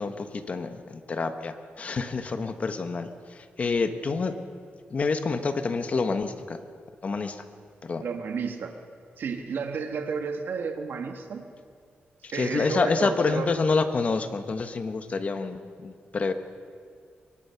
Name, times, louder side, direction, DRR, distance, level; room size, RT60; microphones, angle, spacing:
voice 1, 0.0-4.3 4.9-6.6 7.0-7.4 7.8-8.0 12.2-16.3, left 4 dB, 40° left, 8 dB, 1.2 m, -28 dB
voice 2, 8.0-8.8 9.2-11.4 12.3-13.5, right 5 dB, 65° right, 5 dB, 1.7 m, -32 dB
24.0 x 22.5 x 5.8 m, 2.2 s
wide cardioid pair, 150°, 4 cm